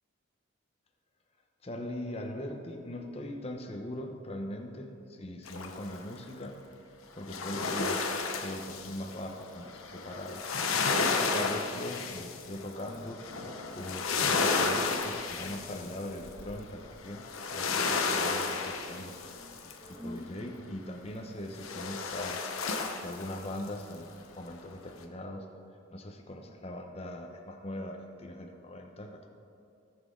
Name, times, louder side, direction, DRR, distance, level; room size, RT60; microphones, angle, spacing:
voice 1, 1.6-6.6 7.1-8.0 8.4-13.2 13.7-19.2 19.9-22.4 23.0-25.5 25.7-29.3, left 1 dB, 30° left, 3 dB, 0.9 m, -41 dB
sound 1, 5.5-6.1 7.2-20.0 21.6-23.7 24.1-24.2, left 4 dB, 85° left, 0.9 m, -32 dB
sound 2, 11.3-12.4 12.8-14.7 15.3-16.4 18.1-21.1, equal, 15° right, 1.9 m, -51 dB
17.0 x 6.4 x 3.8 m, 2.5 s
head